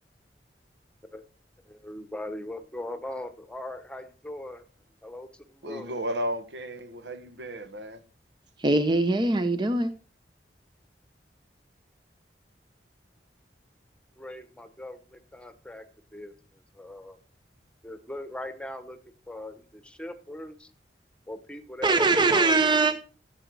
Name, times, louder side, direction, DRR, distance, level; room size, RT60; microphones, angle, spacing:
voice 1, 1.7-4.6 5.0-6.0 14.2-15.8 16.1-17.2 17.8-19.0 19.3-20.7 21.3-22.9, left 1 dB, 5° left, 1.1 m, -40 dB
voice 2, 5.6-8.0, right 1 dB, 80° right, 1.3 m, -34 dB
voice 3, 8.6-9.9 21.8-22.9, right 3 dB, 25° right, 0.7 m, -22 dB
14.0 x 8.1 x 4.7 m
head